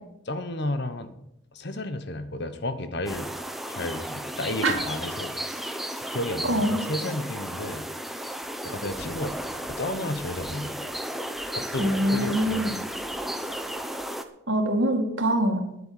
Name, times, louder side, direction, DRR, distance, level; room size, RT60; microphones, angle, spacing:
voice 1, 0.3-1.1 1.5-3.3 3.7-5.3 6.0-7.9 8.6-9.4 9.7-10.8 11.5-12.7, left 1 dB, 50° left, 11 dB, 1.1 m, -32 dB
sound 1, 3.1-14.2, right 1 dB, ahead, 0.7 m, -34 dB
voice 2, 6.4-6.8 11.8-12.8 14.5-15.6, right 1 dB, 60° right, 4 dB, 2.2 m, -24 dB
10.0 x 8.2 x 8.9 m, 0.82 s
head